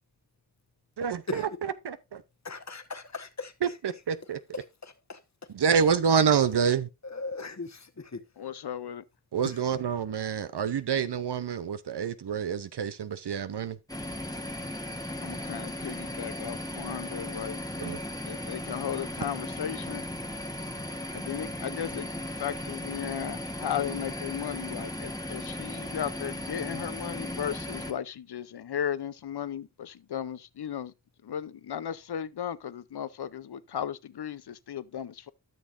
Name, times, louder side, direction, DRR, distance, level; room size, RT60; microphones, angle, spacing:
voice 1, 1.0-1.4 1.8-2.2 3.6-4.4 5.5-6.9 9.3-13.8 17.8-18.0, right 7 dB, 75° right, 0.7 m, -27 dB
voice 2, 2.4-3.8 4.5-5.2 7.0-8.2 9.4-9.6, left 3 dB, 40° left, 1.2 m, -38 dB
voice 3, 8.4-9.0 15.2-17.9 18.2-20.1 21.1-30.9 31.2-35.3, left 9 dB, 70° left, 0.6 m, -36 dB
sound 1, 13.9-27.9, left 1 dB, 10° left, 1.2 m, -36 dB
13.5 x 6.3 x 2.5 m
cardioid pair, 45°, 41 cm